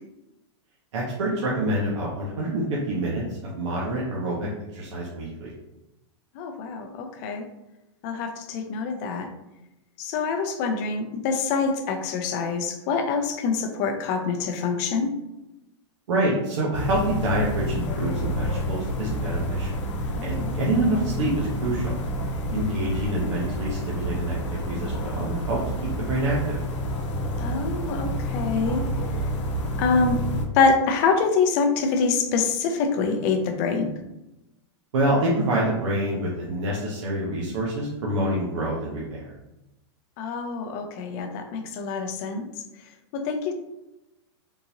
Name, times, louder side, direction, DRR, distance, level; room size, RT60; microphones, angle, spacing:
voice 1, 0.9-5.5 16.1-19.8 20.2-22.0 22.5-25.6 26.0-26.6 34.9-39.3, right 1 dB, 75° right, -5 dB, 0.9 m, -27 dB
voice 2, 6.3-7.5 8.0-9.3 10.0-15.1 20.1-20.6 22.5-22.8 27.4-28.8 29.8-30.2 30.5-33.9 40.2-42.4 43.1-43.5, left 5 dB, 35° left, 6 dB, 0.4 m, -25 dB
sound 1, 16.7-30.5, equal, 80° left, 0.7 m, -29 dB
3.7 x 2.5 x 2.8 m, 0.94 s
supercardioid pair, 160°, 15 cm